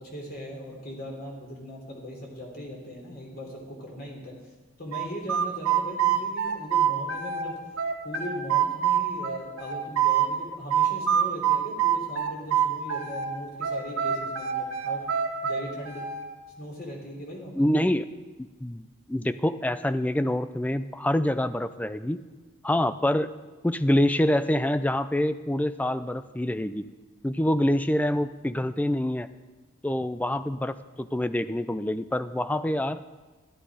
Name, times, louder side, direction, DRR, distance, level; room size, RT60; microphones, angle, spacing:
voice 1, 0.0-4.3 4.8-7.6 8.0-15.1 15.4-16.0 16.6-17.5, equal, 45° left, -1 dB, 3.5 m, -39 dB
sound 1, 4.9-7.5 7.8-10.3 10.7-13.3 13.6-16.2, right 9 dB, 80° right, 1.7 m, -25 dB
voice 2, 17.6-18.1 18.4-22.2 22.6-23.3 23.6-26.9 27.2-29.3 29.8-33.0, left 1 dB, 5° left, 12 dB, 0.4 m, -26 dB
13.0 x 12.0 x 5.0 m, 1.3 s
head